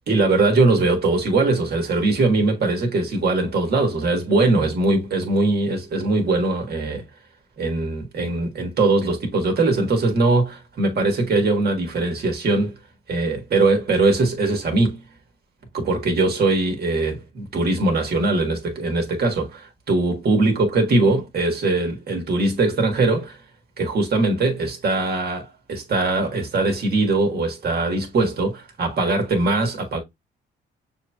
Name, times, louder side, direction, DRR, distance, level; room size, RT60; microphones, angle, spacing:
voice 1, 0.1-7.0 7.6-12.7 13.1-15.0 15.7-23.4 23.8-30.0, right 2 dB, 55° right, 1.5 m, -21 dB
6.4 x 2.9 x 2.3 m
cardioid pair, 90°, 20 cm